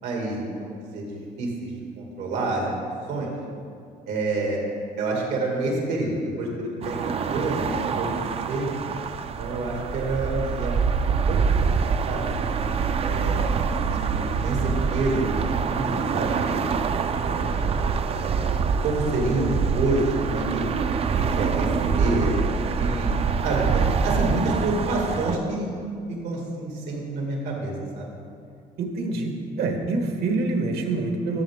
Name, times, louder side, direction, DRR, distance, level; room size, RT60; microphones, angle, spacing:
voice 1, 0.0-1.1 1.4-3.3 4.1-4.6 5.0-8.7 9.2-12.4 13.0-15.3 15.7-16.6 17.1-17.7 18.1-18.5 18.8-20.6 21.1-23.1 23.4-25.7 26.1-28.1, right 2 dB, 85° right, -1 dB, 2.3 m, -28 dB
sound 1, 6.8-25.4, right 5 dB, 35° right, 0.4 m, -25 dB
voice 2, 28.8-31.4, right 3 dB, 70° right, 3 dB, 1.3 m, -26 dB
13.5 x 7.0 x 3.6 m, 2.3 s
cardioid pair, 110°, 17 cm